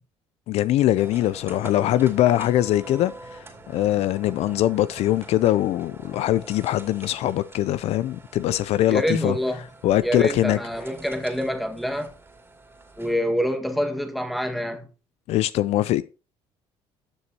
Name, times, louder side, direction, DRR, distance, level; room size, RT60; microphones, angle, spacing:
voice 1, 0.5-9.4 9.8-10.6 15.3-16.0, left 13 dB, 65° left, 0.4 m, -22 dB
sound 1, 0.9-13.1, right 2 dB, 20° right, 2.5 m, -45 dB
voice 2, 8.9-9.6 10.0-12.1 13.0-14.9, equal, ahead, 1.6 m, -26 dB
12.5 x 6.8 x 2.8 m
supercardioid pair, 85°, 12 cm